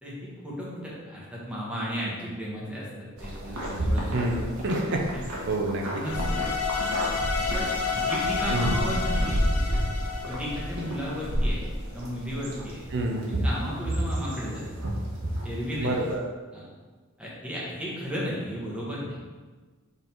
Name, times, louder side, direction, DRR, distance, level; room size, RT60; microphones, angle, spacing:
voice 1, 0.0-4.1 5.9-6.4 7.5-9.4 10.3-11.7 11.9-12.8 13.3-14.6 15.4-16.0 16.5-16.7 17.2-19.2, equal, 5° right, -6 dB, 1.5 m, -34 dB
sound 1, 3.2-16.1, equal, 85° right, 1.4 m, -30 dB
voice 2, 4.1-5.0 5.5-5.9 8.5-8.9 12.9-13.4 15.8-16.2, right 2 dB, 55° right, 1 dB, 0.7 m, -28 dB
sound 2, 6.0-11.2, left 5 dB, 80° left, 0.8 m, -30 dB
5.6 x 3.9 x 4.5 m, 1.4 s
head